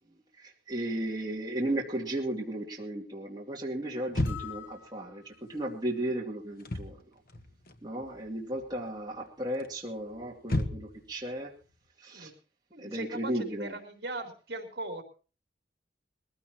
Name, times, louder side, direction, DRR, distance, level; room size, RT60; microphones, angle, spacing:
voice 1, 0.4-7.0 7.8-11.5 12.0-12.3 12.8-13.7, right 1 dB, 25° right, -2 dB, 2.8 m, -35 dB
sound 1, 4.1-4.7 6.5-7.0 7.3-8.2 8.5-8.9 9.6-11.1, left 1 dB, 55° left, 1.4 m, -33 dB
sound 2, 4.2-5.6, left 12 dB, 90° left, 4.5 m, -46 dB
voice 2, 12.7-15.0, right 2 dB, 60° right, 5 dB, 3.4 m, -39 dB
21.5 x 15.5 x 3.0 m, 0.35 s
head